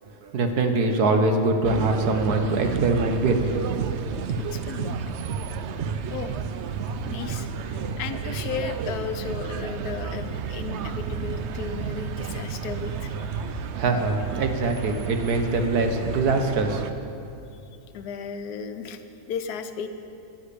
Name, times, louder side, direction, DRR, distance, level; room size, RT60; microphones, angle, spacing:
voice 1, 0.0-3.4 4.0-4.1 13.4-16.9, right 3 dB, 85° right, 5 dB, 1.7 m, -23 dB
sound 1, 1.6-16.9, right 6 dB, 60° right, 0.7 m, -31 dB
voice 2, 4.4-5.0 6.1-6.3 6.8-13.5 17.5-17.6 17.9-19.9, left 6 dB, 90° left, 9 dB, 1.3 m, -35 dB
11.5 x 10.0 x 8.5 m, 2.8 s
omnidirectional pair, 1.6 m